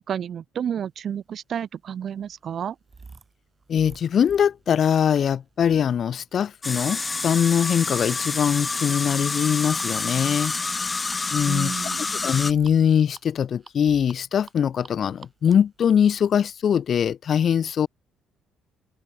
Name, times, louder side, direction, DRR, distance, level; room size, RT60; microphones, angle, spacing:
voice 1, 0.0-2.8 11.5-12.1, right 8 dB, 55° right, 0.8 m, -31 dB
sound 1, 1.3-16.9, right 4 dB, 30° right, 1.8 m, -52 dB
voice 2, 3.7-10.6 11.3-11.7 12.2-17.9, left 8 dB, 50° left, 0.4 m, -22 dB
sound 2, 6.6-12.5, left 3 dB, 25° left, 0.8 m, -28 dB
open air
hypercardioid pair, 65°, 0 cm